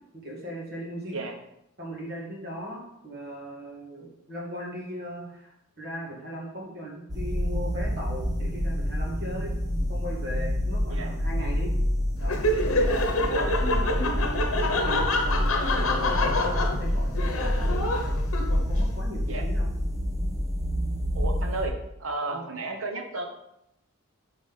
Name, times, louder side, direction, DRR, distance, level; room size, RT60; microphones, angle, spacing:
voice 1, 0.1-1.3 1.8-9.6 9.9-11.7 12.2-12.4 12.7-17.9 18.5-19.7 22.3-22.6, equal, 50° right, -3 dB, 1.8 m, -38 dB
sound 1, 7.1-21.7, equal, 15° right, 0.9 m, -28 dB
Laughter, 12.2-18.8, left 1 dB, 80° left, 0.9 m, -27 dB
voice 2, 13.2-13.6 19.3-19.4 21.1-21.7 22.0-23.3, right 3 dB, 75° right, 4 dB, 1.0 m, -33 dB
5.4 x 4.0 x 5.3 m, 0.82 s
head